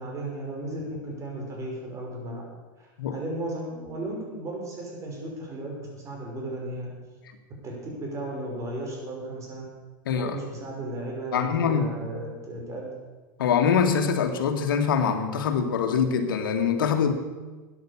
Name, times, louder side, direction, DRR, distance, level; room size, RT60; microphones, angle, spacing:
voice 1, 0.0-2.4 2.8-6.9 7.6-9.6 10.2-12.9, right 1 dB, 30° right, -1 dB, 5.5 m, -35 dB
voice 2, 10.1-10.4 11.3-11.9 13.4-17.1, left 6 dB, 85° left, 6 dB, 1.9 m, -24 dB
13.5 x 9.7 x 7.3 m, 1.3 s
supercardioid pair, 130°, 11 cm